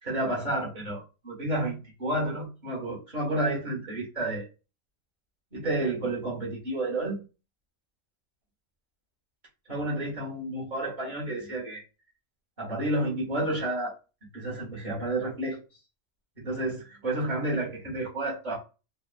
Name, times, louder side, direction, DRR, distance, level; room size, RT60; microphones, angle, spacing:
voice 1, 0.0-4.5 5.5-7.2 9.7-11.8 12.6-13.9 14.3-15.6 16.4-18.6, right 1 dB, 40° right, -5 dB, 1.6 m, -30 dB
4.0 x 2.1 x 2.4 m, 0.30 s
omnidirectional pair, 1.2 m